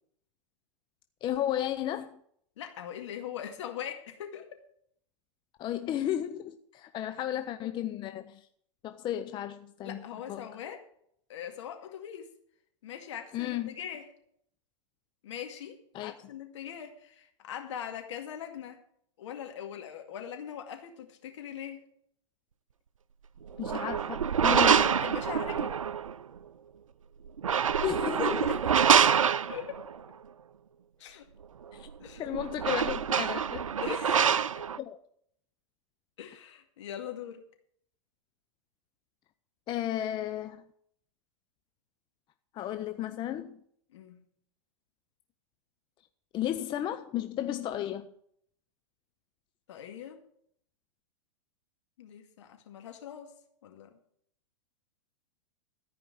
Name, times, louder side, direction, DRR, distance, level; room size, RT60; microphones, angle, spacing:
voice 1, 1.2-2.2 5.6-8.5 8.8-10.5 13.3-13.7 15.9-16.1 23.6-24.9 27.8-28.8 31.7-31.9 32.2-34.0 34.8-35.0 39.7-40.6 42.5-43.6 46.3-48.1, left 11 dB, 30° left, 0.6 m, -33 dB
voice 2, 2.6-4.6 9.8-10.8 11.3-12.3 12.8-14.0 15.2-18.8 19.2-21.8 24.7-25.8 29.5-29.8 31.0-31.3 32.0-32.3 33.8-34.6 36.2-37.4 43.9-44.2 49.7-50.2 52.0-53.3 53.6-54.0, left 9 dB, 65° left, 2.2 m, -41 dB
sound 1, 23.5-26.1 27.3-29.9 31.9-32.0 32.3-34.8, right 7 dB, 85° right, 0.4 m, -26 dB
13.5 x 5.1 x 8.9 m
hypercardioid pair, 105°, 16 cm